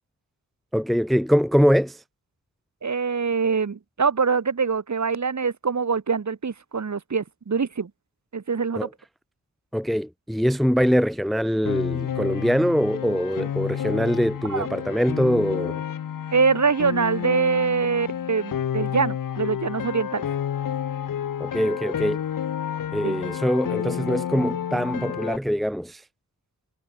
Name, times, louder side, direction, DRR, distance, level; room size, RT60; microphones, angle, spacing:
voice 1, 0.7-2.0 8.8-8.9 9.7-15.8 21.4-22.2 22.9-26.0, equal, ahead, 0.8 m, -23 dB
voice 2, 2.8-7.9 8.3-8.9 14.5-14.7 16.3-20.3 23.0-23.2, right 5 dB, 60° right, 6.3 m, -24 dB
Piano, 11.7-25.4, left 9 dB, 85° left, 1.3 m, -30 dB
cardioid pair, 75°, 32 cm